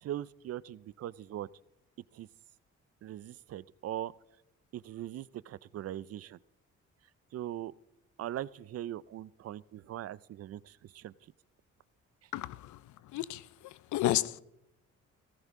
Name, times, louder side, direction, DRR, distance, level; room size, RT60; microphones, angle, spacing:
voice 1, 0.0-1.5 2.1-2.3 3.0-4.1 4.7-6.4 7.3-7.7 8.2-11.1, right 12 dB, 55° right, 0.4 m, -40 dB
voice 2, 12.3-14.4, left 15 dB, 75° left, 0.5 m, -33 dB
18.0 x 14.5 x 3.7 m
cardioid pair, 90°, 30 cm